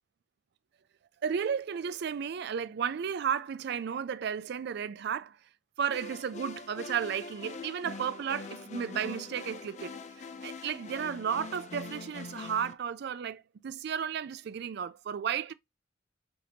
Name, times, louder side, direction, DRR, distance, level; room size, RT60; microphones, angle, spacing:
voice 1, 1.2-5.4 5.8-10.0 10.4-15.5, right 7 dB, 60° right, 0.4 m, -33 dB
sound 1, 5.9-12.7, left 4 dB, 40° left, 0.4 m, -43 dB
5.0 x 2.7 x 2.8 m
head